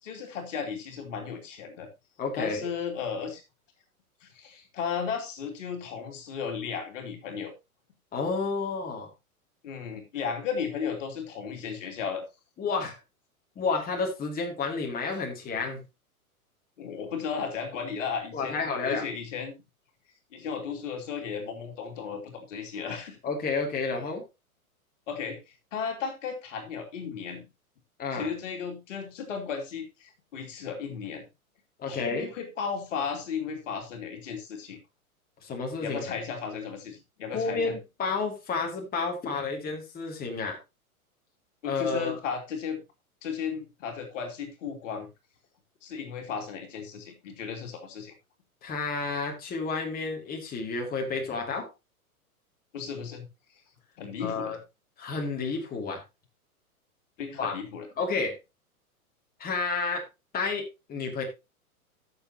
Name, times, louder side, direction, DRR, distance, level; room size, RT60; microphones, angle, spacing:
voice 1, 0.0-1.9 2.4-3.4 4.2-7.5 9.6-12.2 16.8-19.5 20.3-23.2 25.1-27.5 28.1-31.2 31.9-34.8 35.8-37.7 41.6-42.8 43.2-45.1 45.8-48.1 52.7-53.3 54.0-54.6 57.2-57.9, left 6 dB, 55° left, 4 dB, 2.8 m, -35 dB
voice 2, 2.2-2.7 8.1-9.1 12.6-13.0 13.6-15.8 18.3-19.1 23.2-24.2 28.0-28.3 31.8-32.3 35.4-36.1 37.3-40.6 41.6-42.2 48.6-51.7 54.2-54.6 55.0-56.0 57.4-57.6 58.0-58.3 59.4-60.0 60.3-61.2, left 4 dB, 20° left, 1 dB, 2.6 m, -30 dB
15.0 x 6.9 x 2.8 m, 0.25 s
figure-of-eight pair, 105°, 44 cm